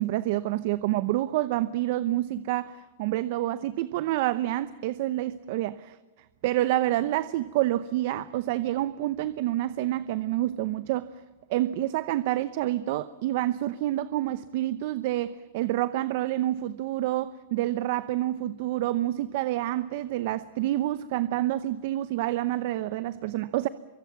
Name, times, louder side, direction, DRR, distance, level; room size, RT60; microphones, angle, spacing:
voice 1, 0.0-6.0 6.4-11.1 11.5-23.7, right 14 dB, 50° right, 15 dB, 0.7 m, -28 dB
24.5 x 24.0 x 7.1 m, 1.2 s
supercardioid pair, 155°, 0 cm